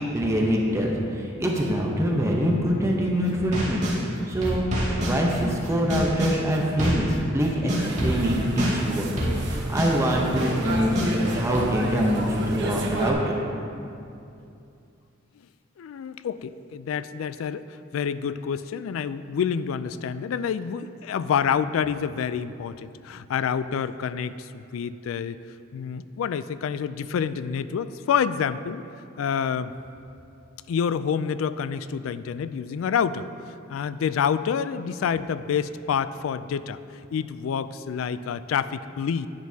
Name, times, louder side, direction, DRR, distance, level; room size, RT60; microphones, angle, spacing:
voice 1, 0.1-3.8 4.3-4.6 5.0-9.2 9.5-13.4, equal, 15° right, -1 dB, 0.7 m, -24 dB
sound 1, 3.3-4.0 4.4-7.1 7.4-11.6, equal, 35° right, 2.1 m, -27 dB
sound 2, 7.8-13.1, right 2 dB, 60° right, 1.0 m, -30 dB
voice 2, 15.8-17.7 17.9-25.4 25.7-28.8 29.2-29.7 30.7-33.3 33.7-36.8 37.1-39.3, left 7 dB, 75° left, 14 dB, 0.3 m, -27 dB
10.5 x 9.4 x 2.8 m, 2.6 s
head